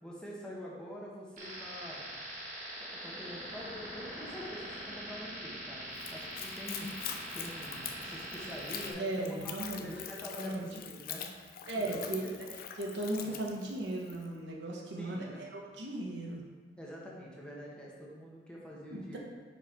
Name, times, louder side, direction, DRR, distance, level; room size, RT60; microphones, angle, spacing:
voice 1, 0.0-2.0 2.8-5.9 6.1-7.0 7.3-11.3 11.7-12.6 13.2-13.3 14.7-15.4 16.8-19.2, equal, 5° left, -5 dB, 1.1 m, -45 dB
sound 1, 1.4-8.9, equal, 50° right, 1.4 m, -43 dB
Splash splatter / Trickle dribble, 5.9-14.3, left 9 dB, 55° left, 0.5 m, -44 dB
voice 2, 9.0-9.9 10.4-10.7 11.7-12.5 12.8-16.4 18.9-19.2, right 1 dB, 80° right, -1 dB, 1.0 m, -37 dB
5.6 x 4.6 x 4.5 m, 1.4 s
head